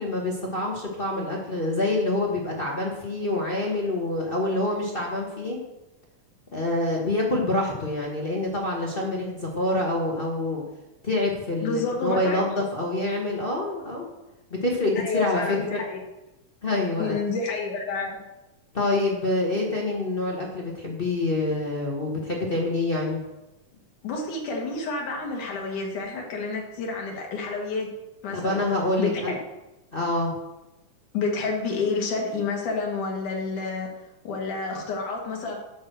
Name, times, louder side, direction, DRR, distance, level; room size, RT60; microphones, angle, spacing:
voice 1, 0.0-5.6 6.5-10.6 11.0-14.0 14.5-15.8 16.6-17.2 18.7-23.2 28.3-29.4 29.9-30.3, left 2 dB, 50° left, -2 dB, 0.6 m, -26 dB
voice 2, 11.6-12.4 15.0-16.0 17.0-18.2 24.0-27.9 28.2-28.6 29.0-29.4 31.1-33.9 34.2-35.6, left 4 dB, 90° left, 0 dB, 3.2 m, -29 dB
9.2 x 6.3 x 6.6 m, 0.96 s
omnidirectional pair, 3.5 m